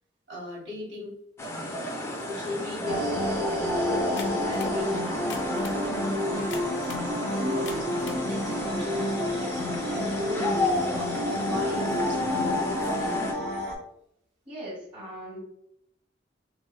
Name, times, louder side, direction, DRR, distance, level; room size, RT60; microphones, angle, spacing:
voice 1, 0.3-1.1 2.2-3.2 4.2-5.2 5.5-6.5 7.3-13.3, left 1 dB, 70° right, -3 dB, 1.3 m, -38 dB
sound 1, 1.4-13.3, left 1 dB, 15° left, 0.3 m, -33 dB
sound 2, 2.9-13.8, left 1 dB, 55° right, 0.9 m, -29 dB
sound 3, 4.2-4.8 5.2-5.8 6.5-7.1 7.5-8.2, left 5 dB, 85° left, 0.5 m, -42 dB
voice 2, 14.5-15.4, right 1 dB, 30° right, -6 dB, 1.1 m, -39 dB
3.1 x 2.6 x 2.2 m, 0.73 s
head